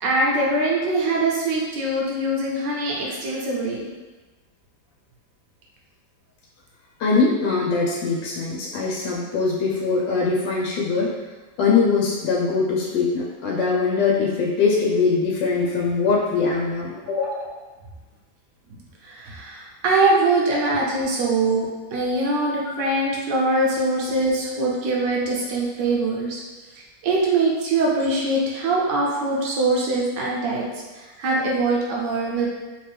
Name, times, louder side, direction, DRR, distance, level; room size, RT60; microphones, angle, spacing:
voice 1, 0.0-3.9 19.0-21.6 21.9-26.4 27.0-30.6 31.0-32.5, right 2 dB, 75° right, -3 dB, 1.4 m, -22 dB
voice 2, 7.0-11.1 11.6-17.6 22.8-22.9 24.3-24.4, left 4 dB, 80° left, -3 dB, 1.3 m, -22 dB
3.3 x 3.1 x 3.3 m, 1.2 s
omnidirectional pair, 2.0 m